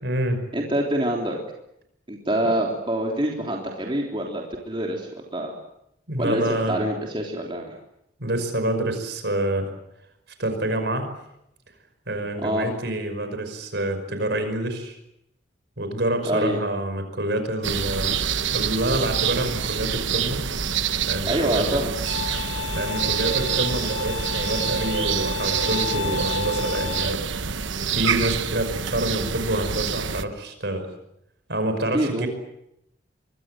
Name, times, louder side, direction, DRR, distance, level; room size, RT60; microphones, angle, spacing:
voice 1, 0.0-0.4 2.4-2.5 6.1-6.8 8.2-9.7 10.4-11.1 12.1-15.0 15.8-18.2 18.5-20.4 21.1-21.8 22.7-27.5 27.8-30.9 31.5-32.3, right 1 dB, 60° right, 8 dB, 5.6 m, -27 dB
voice 2, 0.5-1.4 2.1-5.5 6.2-7.7 12.4-12.7 16.2-16.6 21.3-21.9 31.9-32.3, right 1 dB, 25° right, 0 dB, 3.5 m, -25 dB
sound 1, 17.6-30.2, right 7 dB, 75° right, 1.1 m, -26 dB
Bowed string instrument, 22.1-27.1, left 11 dB, 60° left, 0.9 m, -32 dB
25.0 x 23.5 x 7.8 m, 0.81 s
head